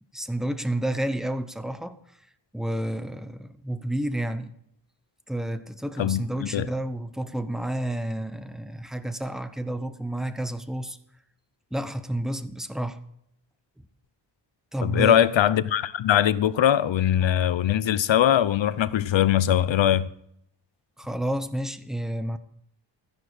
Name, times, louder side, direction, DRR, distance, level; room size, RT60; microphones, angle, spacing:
voice 1, 0.1-2.0 2.5-4.5 5.3-11.0 11.7-13.0 14.7-15.2 21.0-22.4, right 1 dB, ahead, 0.9 m, -30 dB
voice 2, 6.0-6.7 14.8-20.1, left 10 dB, 75° left, 0.8 m, -21 dB
13.5 x 10.5 x 5.0 m
wide cardioid pair, 130°, 45 cm